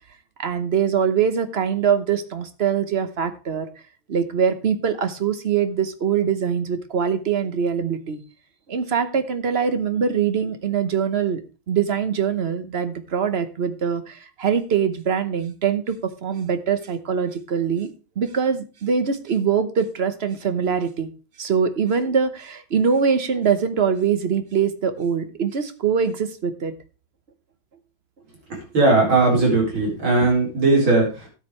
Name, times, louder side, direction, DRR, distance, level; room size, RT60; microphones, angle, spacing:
voice 1, 0.4-3.7 4.1-8.2 8.7-11.4 11.7-17.9 18.2-21.1 21.4-26.7, right 7 dB, 45° right, 11 dB, 0.9 m, -23 dB
voice 2, 28.5-31.3, right 3 dB, 75° right, -1 dB, 5.1 m, -18 dB
13.0 x 9.0 x 3.2 m, 0.32 s
omnidirectional pair, 2.2 m